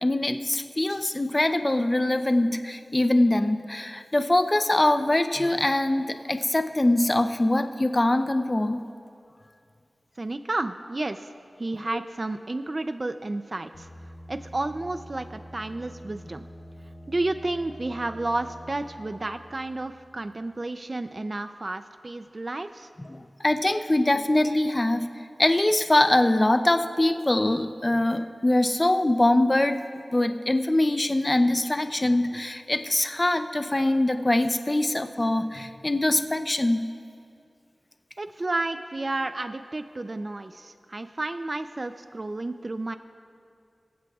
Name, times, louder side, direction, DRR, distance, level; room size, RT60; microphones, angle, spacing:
voice 1, 0.0-8.8 11.9-12.0 23.1-23.2 23.4-25.1 25.4-29.8 30.1-36.9, left 1 dB, 30° left, 8 dB, 0.6 m, -23 dB
voice 2, 10.2-11.3 11.6-13.9 14.3-16.5 17.1-22.9 38.2-43.0, right 2 dB, 45° right, 9 dB, 0.5 m, -31 dB
sound 1, 13.7-20.3, equal, 80° left, 2.9 m, -46 dB
25.0 x 16.0 x 2.4 m, 2.4 s
wide cardioid pair, 65°, 0 cm